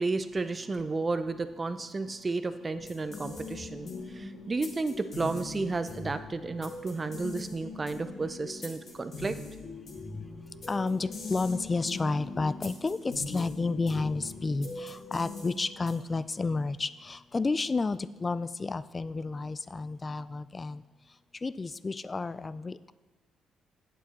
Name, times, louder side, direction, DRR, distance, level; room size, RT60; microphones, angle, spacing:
voice 1, 0.0-9.4, right 3 dB, 30° right, 11 dB, 0.6 m, -32 dB
sound 1, 2.7-16.2, left 3 dB, 55° left, 2.1 m, -42 dB
voice 2, 10.7-20.8 21.4-22.9, left 3 dB, 25° left, 16 dB, 0.3 m, -31 dB
8.8 x 7.4 x 4.2 m, 1.2 s
cardioid pair, 90°, 0 cm